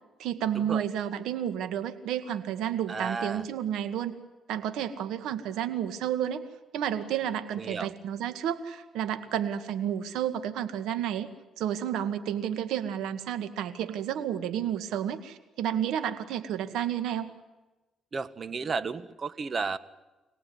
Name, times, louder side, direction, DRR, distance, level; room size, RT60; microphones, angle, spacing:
voice 1, 0.2-4.2 4.5-6.4 6.7-11.3 11.6-17.3, right 10 dB, 85° right, 9 dB, 2.0 m, -31 dB
voice 2, 2.9-3.4 7.6-7.9 18.1-19.8, right 4 dB, 40° right, 14 dB, 1.4 m, -33 dB
26.5 x 18.5 x 9.6 m, 1.1 s
cardioid pair, 90°, 0 cm